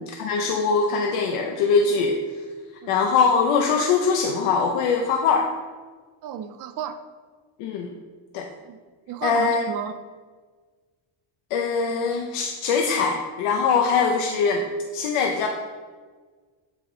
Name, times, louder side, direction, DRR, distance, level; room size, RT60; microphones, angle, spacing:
voice 1, 0.0-2.2 2.9-5.5 7.6-7.9 8.3-8.5 9.2-9.6 11.5-15.5, left 5 dB, 85° left, 3 dB, 0.7 m, -22 dB
voice 2, 6.2-7.0 8.6-8.8 9.1-10.0, right 8 dB, 45° right, 9 dB, 0.4 m, -32 dB
7.8 x 3.6 x 3.7 m, 1.5 s
cardioid pair, 115°, 50 cm